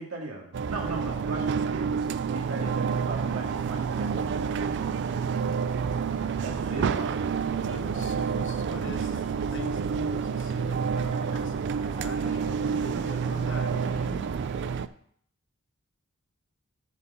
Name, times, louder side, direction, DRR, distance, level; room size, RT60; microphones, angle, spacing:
voice 1, 0.0-5.0 6.4-6.9, right 2 dB, 75° right, -1 dB, 2.2 m, -39 dB
sound 1, 0.5-14.9, right 6 dB, 55° right, 0.3 m, -29 dB
sound 2, 2.3-14.8, right 2 dB, 30° right, 1.5 m, -50 dB
voice 2, 6.7-7.1 7.7-9.2 9.5-14.3, left 2 dB, 55° left, 7 dB, 1.0 m, -42 dB
8.2 x 4.5 x 6.7 m, 0.64 s
head